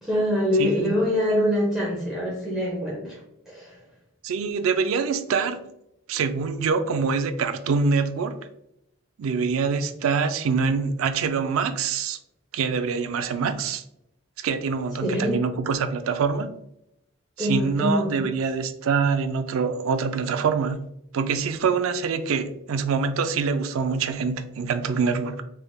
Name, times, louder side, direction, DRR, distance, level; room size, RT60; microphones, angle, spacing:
voice 1, 0.0-3.2 3.5-3.7 15.0-15.3 17.4-18.3, equal, 5° right, -6 dB, 0.7 m, -24 dB
voice 2, 0.6-0.9 4.2-5.6 6.1-8.4 9.2-12.2 12.5-13.8 14.4-16.5 17.4-20.9 21.1-25.4, right 5 dB, 80° right, 9 dB, 0.4 m, -25 dB
3.4 x 3.3 x 2.2 m, 0.81 s
head